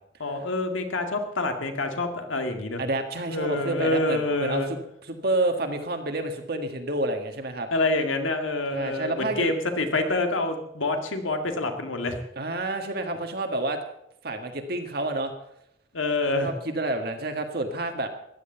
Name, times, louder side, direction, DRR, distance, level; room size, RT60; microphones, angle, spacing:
voice 1, 0.2-2.8 3.3-4.7 7.7-12.2 15.9-16.5, left 2 dB, 75° left, 5 dB, 2.1 m, -27 dB
voice 2, 2.8-7.7 8.7-9.5 12.3-13.8 14.2-15.3 16.4-18.1, right 2 dB, 50° right, 5 dB, 1.7 m, -29 dB
15.0 x 11.0 x 6.8 m, 0.77 s
head